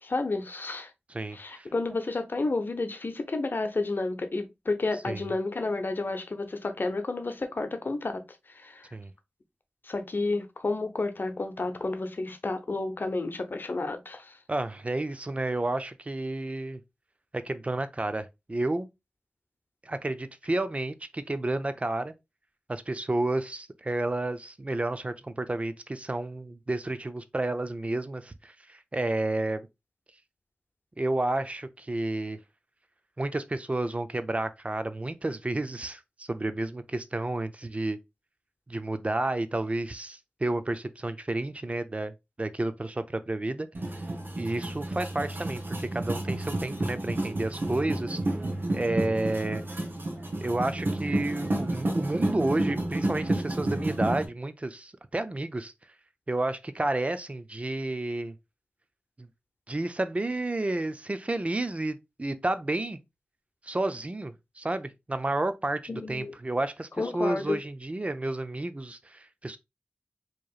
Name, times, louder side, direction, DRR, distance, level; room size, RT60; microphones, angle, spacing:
voice 1, 0.0-0.9 1.3-8.2 8.5-8.9 9.8-14.4 65.9-66.3 67.0-67.6, left 3 dB, 65° left, 0.7 m, -31 dB
voice 2, 1.1-1.7 5.1-5.2 8.9-9.1 14.5-16.8 17.3-18.9 19.8-22.1 22.7-29.7 31.0-32.4 33.2-38.0 38.7-42.1 42.4-43.7 44.3-48.2 48.7-49.6 50.4-55.7 56.3-58.3 59.2-59.3 59.7-63.0 63.6-69.6, right 2 dB, 35° right, 0.5 m, -31 dB
sound 1, 43.7-54.2, right 1 dB, 70° right, 0.9 m, -30 dB
4.7 x 3.0 x 2.3 m
wide cardioid pair, 50°, 4 cm